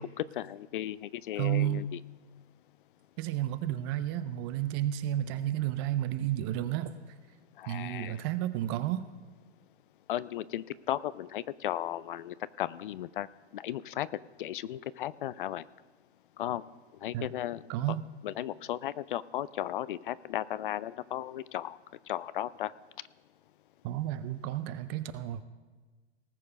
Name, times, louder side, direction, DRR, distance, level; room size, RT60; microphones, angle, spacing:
voice 1, 0.0-2.0 7.6-8.3 10.1-13.3 13.5-14.1 14.4-15.6 16.4-16.6 17.0-17.6 18.2-21.8 22.1-22.7, left 12 dB, 50° left, 18 dB, 0.4 m, -35 dB
voice 2, 1.4-1.9 3.2-6.9 7.7-9.0 17.1-17.3 17.7-18.1 23.8-25.4, right 12 dB, 25° right, 12 dB, 0.4 m, -31 dB
19.0 x 6.5 x 5.2 m, 1.4 s
hypercardioid pair, 115°, 34 cm